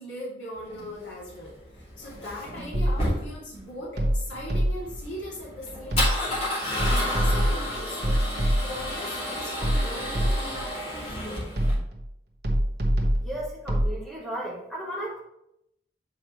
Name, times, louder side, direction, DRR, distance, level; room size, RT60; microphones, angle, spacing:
voice 1, 0.0-11.4, left 1 dB, 85° left, -6 dB, 2.5 m, -40 dB
Male speech man speaking / Car / Engine starting, 0.6-11.7, left 1 dB, 35° left, 2.7 m, -32 dB
sound 1, 2.7-3.3 4.0-5.0 5.9-6.4 6.8-8.9 9.6-10.7 11.6-12.1 12.4-13.9, equal, 60° right, 1.5 m, -25 dB
voice 2, 13.2-15.2, right 1 dB, ahead, -5 dB, 2.1 m, -34 dB
8.6 x 4.9 x 3.1 m, 0.80 s
head